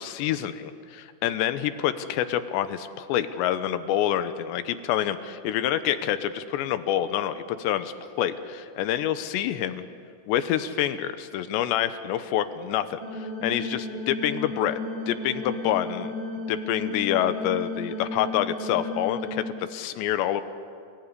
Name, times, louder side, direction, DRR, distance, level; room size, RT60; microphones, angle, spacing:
voice 1, 0.0-9.8 10.3-13.0 13.4-14.8 15.1-16.1 16.5-19.4 19.7-20.4, left 11 dB, 90° left, 11 dB, 3.3 m, -27 dB
sound 1, 13.0-19.5, left 2 dB, 30° right, 3.2 m, -34 dB
28.5 x 19.0 x 9.9 m, 2.4 s
omnidirectional pair, 4.9 m